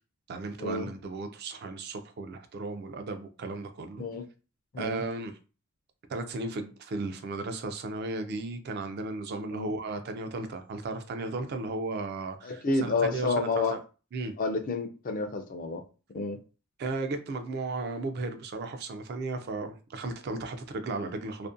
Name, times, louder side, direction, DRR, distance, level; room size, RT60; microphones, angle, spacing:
voice 1, 0.3-4.0 4.8-5.4 6.1-13.8 14.1-14.4 16.8-21.5, right 3 dB, 45° right, 0.3 m, -35 dB
voice 2, 12.4-13.8 14.4-15.8 16.1-16.4, left 3 dB, 40° left, 0.3 m, -29 dB
2.5 x 2.1 x 2.5 m
head